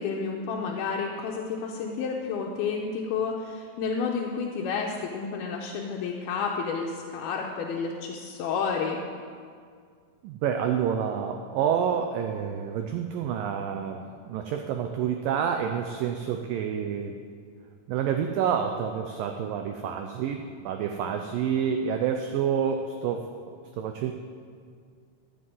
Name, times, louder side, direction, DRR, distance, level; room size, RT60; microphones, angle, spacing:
voice 1, 0.0-9.0, left 5 dB, 80° left, -1 dB, 2.5 m, -30 dB
voice 2, 10.2-14.0 14.3-17.2 17.9-24.1, right 8 dB, 85° right, 5 dB, 1.9 m, -28 dB
13.5 x 7.8 x 7.6 m, 2.1 s
omnidirectional pair, 4.8 m